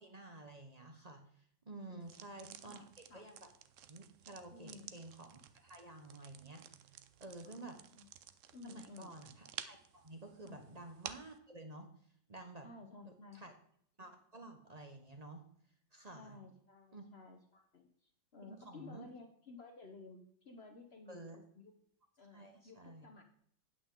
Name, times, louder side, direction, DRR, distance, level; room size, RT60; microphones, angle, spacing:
voice 1, 0.0-2.8 3.1-3.5 3.9-6.7 7.2-7.8 8.6-11.9 12.3-12.7 13.0-13.5 14.0-15.4 15.9-16.4 16.9-17.0 18.4-19.1 21.1-21.4 22.3-23.1, right 2 dB, 35° right, 5 dB, 0.6 m, -51 dB
sound 1, 2.0-11.4, right 10 dB, 85° right, 0.6 m, -53 dB
voice 2, 2.3-3.2 4.5-5.0 7.4-8.1 8.5-9.2 10.4-10.6 12.6-13.5 16.1-21.7 22.2-23.2, left 3 dB, 50° left, 4 dB, 0.8 m, -55 dB
8.8 x 8.5 x 3.7 m, 0.65 s
omnidirectional pair, 2.0 m